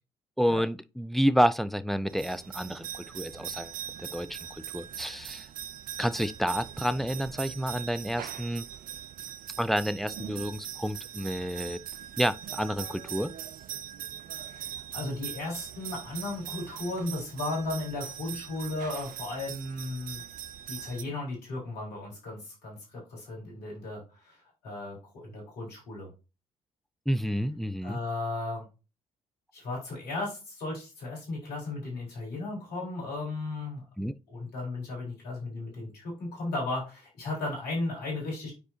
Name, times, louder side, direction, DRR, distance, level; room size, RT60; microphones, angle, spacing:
voice 1, 0.4-3.7 4.0-4.4 4.7-5.4 6.0-8.7 9.6-11.8 12.2-13.3 27.1-28.0 34.0-34.1, equal, ahead, 0.5 m, -29 dB
sound 1, 2.1-21.0, right 10 dB, 60° right, 0.6 m, -41 dB
voice 2, 14.5-20.2 20.7-26.1 27.8-28.7 29.5-33.8 34.3-38.5, left 2 dB, 75° left, 3.9 m, -35 dB
9.7 x 4.8 x 2.7 m
hypercardioid pair, 50°, 16 cm